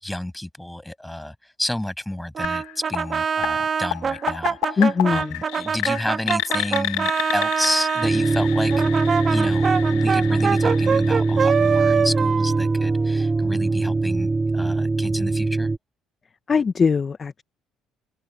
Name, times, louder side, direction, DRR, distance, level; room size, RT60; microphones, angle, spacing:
voice 1, 0.0-2.6 2.9-8.8 9.3-15.7, left 1 dB, 5° left, 7.8 m, -31 dB
Brass instrument, 2.3-8.1 8.7-13.5, right 6 dB, 40° right, 1.9 m, -24 dB
sound 1, 2.4-12.2, left 18 dB, 85° left, 1.3 m, -32 dB
voice 2, 4.8-5.3 16.5-17.4, left 5 dB, 35° left, 1.4 m, -20 dB
sound 2, 8.0-15.8, right 3 dB, 20° right, 2.3 m, -21 dB
open air
supercardioid pair, 85°, 0 cm